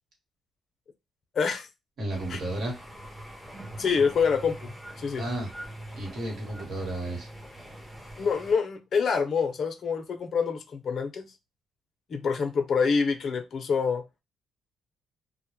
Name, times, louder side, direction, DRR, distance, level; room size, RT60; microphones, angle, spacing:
voice 1, 1.3-1.7 2.3-2.4 3.8-5.3 8.2-11.3 12.1-14.0, left 5 dB, 55° left, 0.5 m, -26 dB
voice 2, 2.0-2.7 5.2-5.5 5.9-7.3, right 1 dB, 65° right, 1.2 m, -32 dB
sound 1, 2.1-8.5, right 1 dB, 5° right, 0.6 m, -43 dB
2.1 x 2.0 x 3.0 m
cardioid pair, 90°, 0 cm